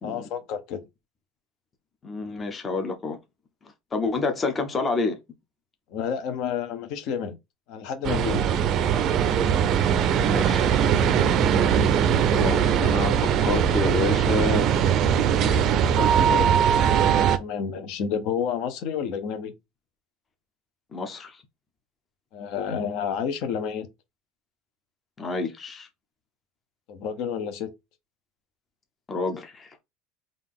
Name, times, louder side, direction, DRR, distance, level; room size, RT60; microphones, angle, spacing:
voice 1, 0.0-0.8 5.9-7.4 7.7-8.5 10.4-10.5 17.4-19.5 22.3-23.9 26.9-27.7, left 7 dB, 55° left, 0.7 m, -30 dB
voice 2, 2.0-3.2 3.9-5.2 10.2-10.7 12.3-14.7 15.4-15.6 16.0-17.0 20.9-21.4 25.2-25.9 29.1-29.8, left 3 dB, 20° left, 0.6 m, -29 dB
sound 1, 8.0-17.4, right 8 dB, 40° right, 0.4 m, -21 dB
3.8 x 2.4 x 3.5 m
cardioid pair, 145°, 0 cm